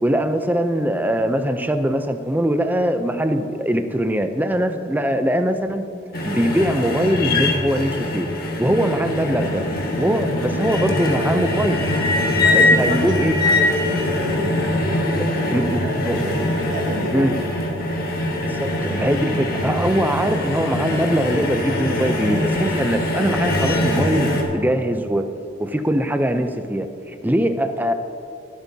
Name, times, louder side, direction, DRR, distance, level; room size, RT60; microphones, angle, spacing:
voice 1, 0.0-5.9 6.3-8.3 8.6-9.6 10.0-11.8 12.5-13.4 15.2-16.5 17.1-17.3 18.4-25.3 25.6-27.9, equal, 10° right, 8 dB, 0.4 m, -22 dB
sound 1, 6.1-24.4, left 1 dB, 50° left, 1.5 m, -22 dB
voice 2, 12.4-13.1 13.4-17.4, equal, 70° right, 0 dB, 1.3 m, -30 dB
20.5 x 8.2 x 2.7 m, 2.6 s
head